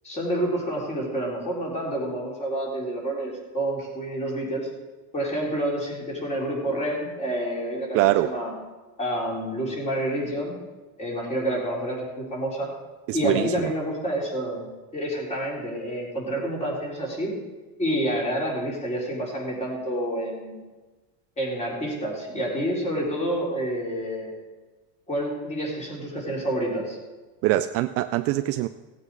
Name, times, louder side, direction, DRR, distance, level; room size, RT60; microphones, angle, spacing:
voice 1, 0.0-4.7 5.1-8.5 9.0-10.6 11.0-12.7 13.1-14.6 14.9-17.3 17.8-20.6 21.4-24.3 25.1-27.0, right 1 dB, 20° left, -3 dB, 4.1 m, -28 dB
voice 2, 7.9-8.4 13.1-13.7 27.4-28.7, right 15 dB, 45° right, 10 dB, 0.4 m, -23 dB
17.5 x 8.6 x 4.8 m, 1.2 s
cardioid pair, 145°, 35 cm